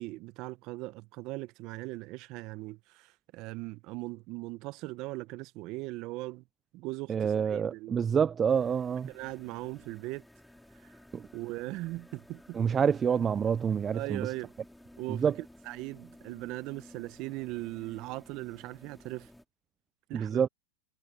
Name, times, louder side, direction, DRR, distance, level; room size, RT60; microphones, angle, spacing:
voice 1, 0.0-6.4 6.7-8.0 9.1-10.2 10.8-10.9 11.3-12.6 13.9-14.5 15.0-19.3 20.1-20.4, right 21 dB, 50° right, 0.8 m, -39 dB
voice 2, 7.1-9.1 11.1-11.3 12.5-14.3 15.1-15.3 20.1-20.5, right 7 dB, 25° right, 0.3 m, -27 dB
sound 1, 8.5-19.4, left 1 dB, 5° left, 4.0 m, -55 dB
hypercardioid pair, 115°, 0 cm